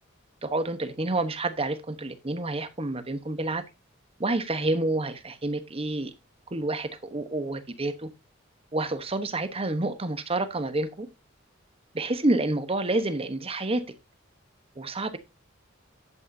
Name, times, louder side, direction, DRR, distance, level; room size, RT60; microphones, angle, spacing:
voice 1, 0.4-3.6 4.2-6.1 6.5-8.1 8.7-11.1 11.9-13.9 14.8-15.2, right 2 dB, 30° right, 1.0 m, -28 dB
10.5 x 8.4 x 2.7 m
head